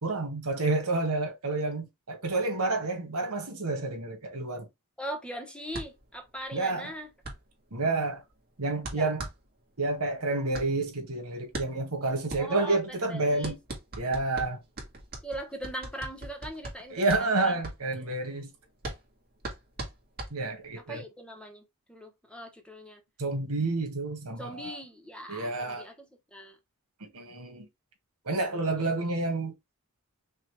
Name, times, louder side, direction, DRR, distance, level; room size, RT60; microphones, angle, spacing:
voice 1, 0.0-4.7 6.5-6.9 7.7-8.2 8.6-9.3 9.8-13.6 14.0-14.6 16.9-18.5 20.3-21.0 23.2-24.8 25.3-25.9 27.0-27.7 28.2-29.5, right 2 dB, 80° right, 1.8 m, -29 dB
voice 2, 5.0-7.1 8.9-9.1 12.4-13.5 15.2-17.6 18.0-18.1 20.8-21.6 21.9-23.0 24.4-26.1 26.3-26.6, right 1 dB, 5° left, 1.0 m, -40 dB
sound 1, 5.7-20.8, right 2 dB, 45° right, 1.7 m, -41 dB
5.6 x 2.5 x 3.3 m
head